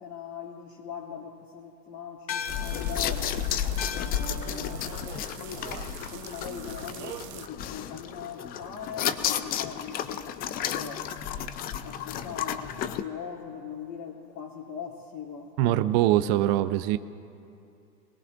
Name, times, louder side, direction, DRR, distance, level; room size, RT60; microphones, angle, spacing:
voice 1, 0.0-3.4 3.9-11.1 11.7-15.8, left 7 dB, 50° left, -6 dB, 2.8 m, -41 dB
sound 1, 2.3-7.0, left 8 dB, 90° left, 0.9 m, -41 dB
sound 2, 2.4-7.5, right 10 dB, 75° right, 1.0 m, -44 dB
sound 3, 2.5-13.0, left 9 dB, 20° left, 0.4 m, -32 dB
voice 2, 15.6-17.0, right 14 dB, 35° right, 12 dB, 0.5 m, -23 dB
26.5 x 21.0 x 2.6 m, 2.6 s
hypercardioid pair, 105°, 50 cm